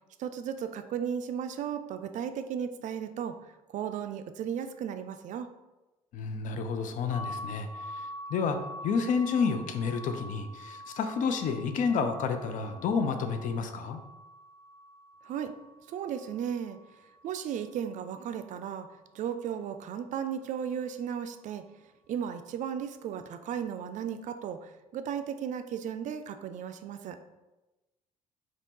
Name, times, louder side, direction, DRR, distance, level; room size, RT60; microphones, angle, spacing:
voice 1, 0.2-3.4 3.7-5.5 15.2-15.5 15.9-16.8 17.2-18.9 19.1-21.6 22.1-27.2, right 8 dB, 45° right, 9 dB, 0.4 m, -35 dB
voice 2, 6.1-7.7 7.9-8.6 8.8-14.0, left 5 dB, 45° left, 7 dB, 0.5 m, -30 dB
sound 1, 7.1-18.8, equal, 75° left, 1.4 m, -46 dB
4.2 x 3.1 x 4.0 m, 1.1 s
figure-of-eight pair, 45°, 18 cm